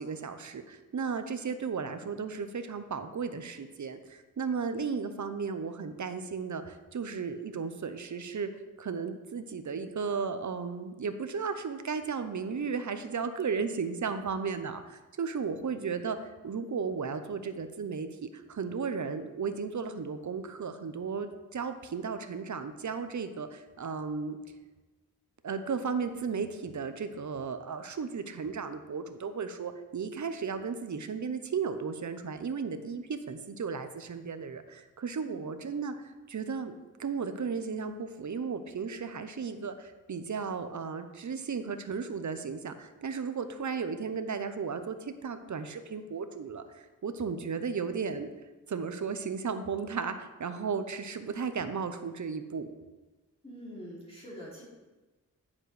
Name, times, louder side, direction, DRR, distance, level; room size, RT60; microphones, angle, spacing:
voice 1, 0.0-8.5 8.8-24.4 25.4-36.7 37.0-48.3 48.7-52.7, right 5 dB, 60° right, 9 dB, 0.7 m, -35 dB
voice 2, 53.4-54.6, equal, 15° left, -6 dB, 2.8 m, -44 dB
10.0 x 7.3 x 3.3 m, 1.2 s
wide cardioid pair, 75°, 33 cm